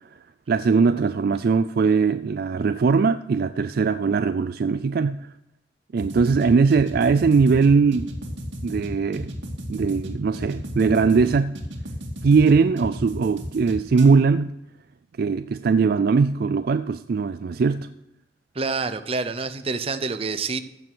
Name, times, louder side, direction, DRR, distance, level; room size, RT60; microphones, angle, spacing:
voice 1, 0.5-5.2 5.9-8.1 8.6-9.3 9.7-11.6 12.2-14.5 15.2-17.9, right 5 dB, 55° right, 0.3 m, -20 dB
sound 1, 6.0-14.0, equal, 80° right, 2.3 m, -35 dB
voice 2, 18.5-20.6, right 4 dB, 30° right, 0.7 m, -27 dB
14.5 x 7.0 x 6.1 m
head